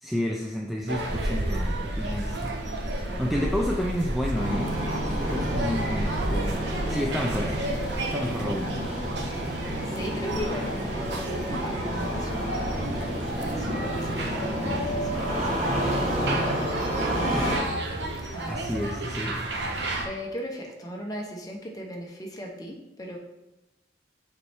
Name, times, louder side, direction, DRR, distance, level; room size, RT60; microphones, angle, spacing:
voice 1, 0.0-2.5 3.2-4.8 5.1-7.6 8.1-9.0 13.2-13.4 17.3-17.5 18.5-19.4, equal, ahead, -1 dB, 0.4 m, -30 dB
sound 1, 0.9-20.0, right 1 dB, 80° right, 0.9 m, -31 dB
voice 2, 3.0-3.6 9.9-16.4 18.3-18.7 19.7-23.2, equal, 20° left, 0 dB, 0.9 m, -38 dB
Engine starting, 4.3-17.6, equal, 45° right, 1.6 m, -30 dB
6.7 x 4.3 x 3.5 m, 0.96 s
head